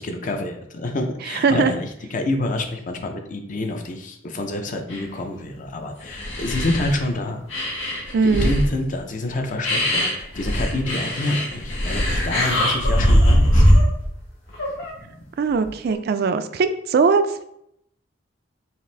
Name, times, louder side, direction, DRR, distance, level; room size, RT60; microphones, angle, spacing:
voice 1, 0.0-7.4 8.3-13.6 15.0-15.2, left 1 dB, 40° left, 4 dB, 0.5 m, -27 dB
sound 1, 4.9-5.0 5.7-5.8 6.0-7.1 7.5-8.7 9.3-9.4 9.6-14.0 14.5-14.9 15.6-15.9, equal, 75° left, 1.6 m, -20 dB
voice 2, 8.1-8.5 15.4-17.4, right 4 dB, 55° right, 10 dB, 0.3 m, -20 dB
5.7 x 2.5 x 3.3 m, 0.75 s
head